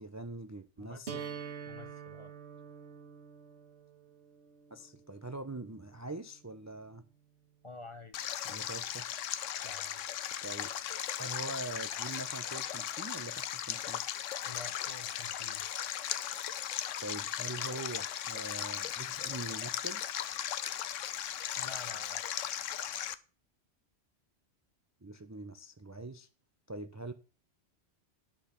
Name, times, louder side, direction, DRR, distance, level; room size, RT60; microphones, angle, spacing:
voice 1, 0.0-1.2 4.7-7.0 8.5-9.1 10.4-10.7 11.2-14.0 17.0-20.0 25.0-26.3 26.7-27.1, right 2 dB, 25° right, 0.4 m, -43 dB
voice 2, 0.8-1.4 1.7-2.3 7.6-8.7 9.6-10.2 14.4-15.6 21.6-22.2, left 3 dB, 30° left, 0.7 m, -50 dB
sound 1, 1.1-7.0, right 7 dB, 65° right, 1.5 m, -47 dB
Stream, 8.1-23.1, left 10 dB, 85° left, 1.0 m, -37 dB
10.5 x 6.1 x 5.9 m
omnidirectional pair, 1.3 m